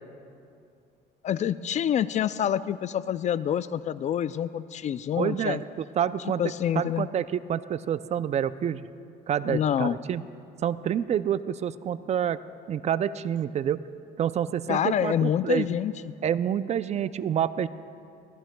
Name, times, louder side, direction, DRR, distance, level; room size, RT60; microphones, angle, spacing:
voice 1, 1.2-5.6 6.2-7.1 9.5-10.0 14.7-16.1, left 9 dB, 45° left, 15 dB, 0.4 m, -27 dB
voice 2, 5.2-5.6 6.0-6.4 6.8-8.8 9.3-10.2 10.6-12.4 12.7-13.8 14.2-15.7 16.2-17.7, right 9 dB, 40° right, 15 dB, 0.4 m, -27 dB
24.0 x 17.0 x 2.2 m, 2.5 s
cardioid pair, 110°, 17 cm